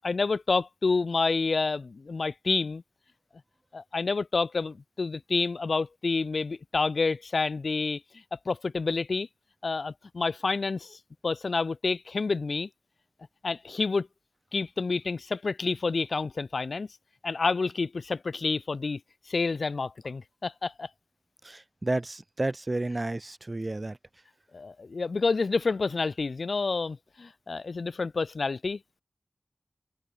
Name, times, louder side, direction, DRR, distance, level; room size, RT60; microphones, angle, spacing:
voice 1, 0.0-2.8 3.7-8.0 8.3-9.3 9.6-11.0 11.2-12.7 13.4-14.1 14.5-16.9 17.2-19.0 19.3-20.9 24.5-29.0, left 4 dB, 80° left, 0.4 m, -29 dB
voice 2, 21.4-24.0, right 2 dB, 35° right, 0.4 m, -31 dB
open air
wide cardioid pair, 75°, 0 cm